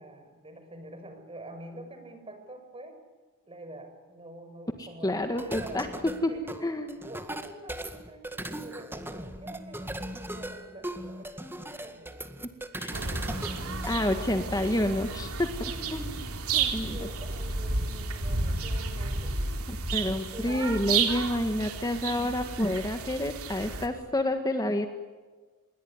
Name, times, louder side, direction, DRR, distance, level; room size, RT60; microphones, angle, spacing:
voice 1, 0.0-3.0 3.5-6.7 7.0-12.3 12.8-14.6 15.7-16.4 16.7-19.4 20.2-20.8, right 1 dB, 25° right, 7 dB, 5.7 m, -46 dB
voice 2, 4.8-5.9 6.2-6.3 6.6-7.0 12.4-12.5 12.8-12.9 13.8-16.1 16.5-17.1 19.7-24.9, left 1 dB, 15° left, 6 dB, 1.7 m, -29 dB
sound 1, 5.2-14.0, right 1 dB, 10° right, 1.9 m, -38 dB
sound 2, 12.9-23.9, right 4 dB, 70° right, 3.5 m, -32 dB
26.5 x 22.5 x 9.7 m, 1.4 s
head